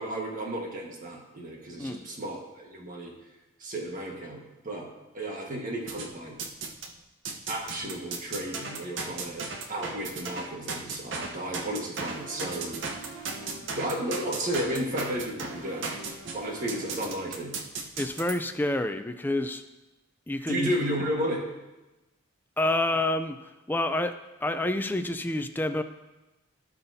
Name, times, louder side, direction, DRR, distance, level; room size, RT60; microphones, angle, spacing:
voice 1, 0.0-3.1 3.6-4.9 5.1-6.4 7.5-12.8 13.7-17.5 20.5-21.5, right 1 dB, 40° right, 0 dB, 1.5 m, -33 dB
sound 1, 5.9-6.9 7.3-18.3, right 4 dB, 65° right, 0.9 m, -36 dB
voice 2, 18.0-19.6 20.3-20.7 22.6-24.1 24.4-25.8, left 1 dB, 10° left, 8 dB, 0.4 m, -28 dB
17.0 x 5.6 x 2.7 m, 1.1 s
head